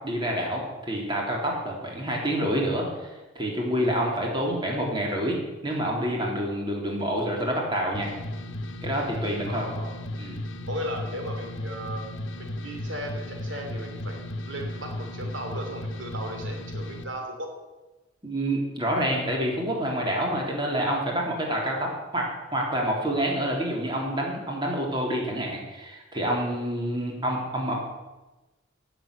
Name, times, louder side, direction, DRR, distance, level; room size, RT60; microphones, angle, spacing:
voice 1, 0.0-3.1 3.4-8.1 8.8-9.7 10.2-10.4 18.2-27.7, equal, 25° right, -1 dB, 3.6 m, -28 dB
sound 1, 7.9-17.0, left 1 dB, 85° left, 1.2 m, -35 dB
voice 2, 9.5-9.9 10.7-12.1 12.4-17.5 21.4-21.5, equal, 75° right, 2 dB, 3.1 m, -36 dB
18.0 x 7.7 x 8.7 m, 1.1 s
head